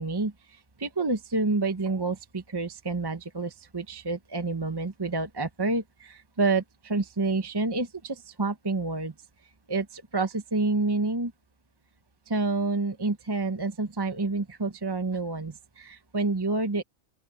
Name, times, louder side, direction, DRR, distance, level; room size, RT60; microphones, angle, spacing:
voice 1, 0.0-9.1 9.7-11.3 12.3-16.8, right 3 dB, 20° right, 0.9 m, -28 dB
open air
omnidirectional pair, 1.3 m